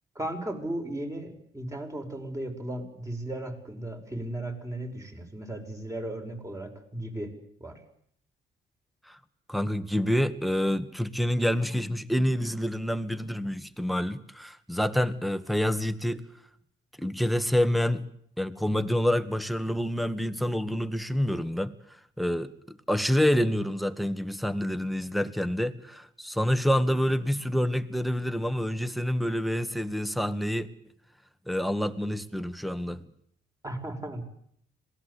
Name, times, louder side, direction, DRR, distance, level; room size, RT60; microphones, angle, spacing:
voice 1, 0.1-7.3 7.6-7.8 33.6-34.2, right 1 dB, 15° right, 6.3 m, -36 dB
voice 2, 9.5-16.2 17.0-18.0 18.4-21.7 22.2-30.7 31.5-33.1, equal, ahead, 1.8 m, -27 dB
26.0 x 19.5 x 8.5 m
cardioid pair, 90°, 20 cm